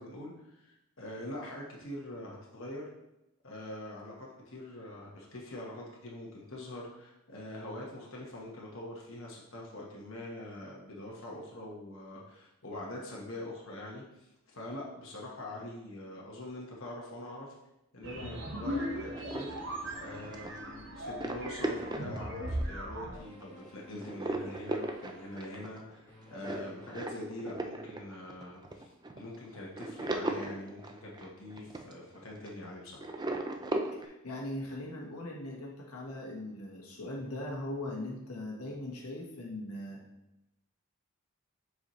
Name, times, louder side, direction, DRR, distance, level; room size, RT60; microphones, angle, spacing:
voice 1, 0.0-2.9 3.4-17.5 17.9-19.5 20.0-26.0 26.3-33.1, left 1 dB, 60° left, -3 dB, 1.2 m, -44 dB
sound 1, 18.0-23.2, equal, 55° right, 0.9 m, -38 dB
sound 2, 19.1-22.9 23.4-23.7 24.0-32.7 33.0-34.1, right 2 dB, 20° right, 0.4 m, -37 dB
sound 3, 23.2-27.8, equal, 10° left, 1.6 m, -57 dB
voice 2, 33.9-40.0, left 1 dB, 85° left, -2 dB, 1.3 m, -40 dB
7.1 x 4.7 x 3.1 m, 0.91 s
head